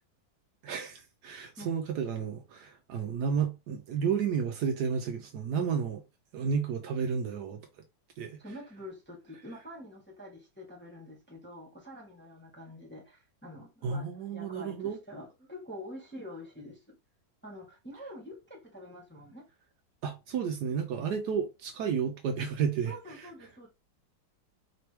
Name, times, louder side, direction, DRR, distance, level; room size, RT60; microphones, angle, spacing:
voice 1, 0.6-6.0 6.3-7.6 8.2-8.4 13.8-15.0 20.0-23.3, right 6 dB, 70° right, 1.1 m, -32 dB
voice 2, 8.4-16.9 17.4-19.4 22.9-23.7, left 1 dB, 5° left, 1.2 m, -46 dB
5.1 x 3.0 x 3.3 m
omnidirectional pair, 2.0 m